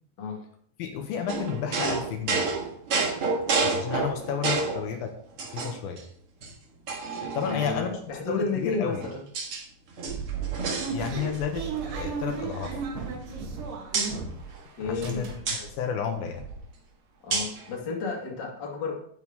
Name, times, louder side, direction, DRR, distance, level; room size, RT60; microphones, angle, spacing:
voice 1, 0.8-2.5 3.6-5.2 5.5-6.0 7.2-8.0 8.3-9.0 10.7-12.8 14.8-16.4, left 7 dB, 75° left, 4 dB, 2.6 m, -32 dB
sound 1, 1.3-4.9 5.4-6.0 6.4-6.5 6.9-7.9 8.7-9.6 9.9-11.5 11.7-12.0 12.3-13.6 13.9-14.1 15.5-15.6 17.3-17.6, right 4 dB, 50° right, 1.9 m, -30 dB
voice 2, 7.4-9.2 14.8-15.3 17.2-18.9, left 4 dB, 35° left, -1 dB, 2.0 m, -31 dB
sound 2, 10.1-14.6 14.8-15.7 16.1-16.2 16.4-16.6, right 6 dB, 85° right, 3.9 m, -34 dB
11.0 x 8.7 x 3.6 m, 0.63 s
omnidirectional pair, 4.5 m